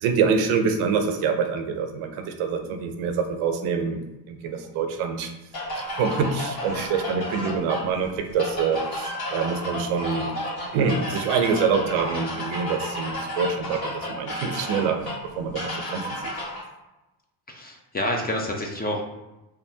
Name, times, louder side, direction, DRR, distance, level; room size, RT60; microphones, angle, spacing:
voice 1, 0.0-4.0 4.3-5.3 6.0-10.3 10.7-15.0 15.3-15.6 15.9-16.3, right 5 dB, 80° right, 5 dB, 0.6 m, -25 dB
sound 1, 5.5-16.6, left 1 dB, 50° left, 1.5 m, -32 dB
voice 2, 17.5-19.0, left 1 dB, 20° left, 1 dB, 0.4 m, -28 dB
3.5 x 2.3 x 2.7 m, 1.0 s
supercardioid pair, 85°, 48 cm